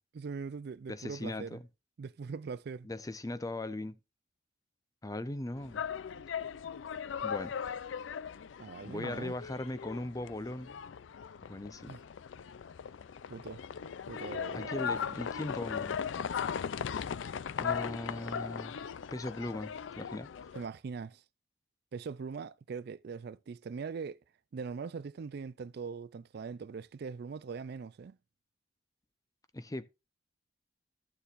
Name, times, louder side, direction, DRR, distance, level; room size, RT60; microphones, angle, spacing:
voice 1, 0.1-1.6 2.0-2.9 8.6-9.3 11.9-12.0 13.3-13.6 14.1-14.8 20.5-21.2 21.9-24.2 24.5-28.2, right 5 dB, 60° right, 0.4 m, -41 dB
voice 2, 0.9-1.6 2.8-4.0 5.0-5.8 7.2-7.6 8.8-10.8 11.4-11.9 14.5-16.0 17.6-18.8 19.1-20.5 29.5-29.9, left 1 dB, 20° left, 0.6 m, -39 dB
sound 1, 5.6-20.7, left 7 dB, 90° left, 0.4 m, -38 dB
13.0 x 7.0 x 2.5 m
head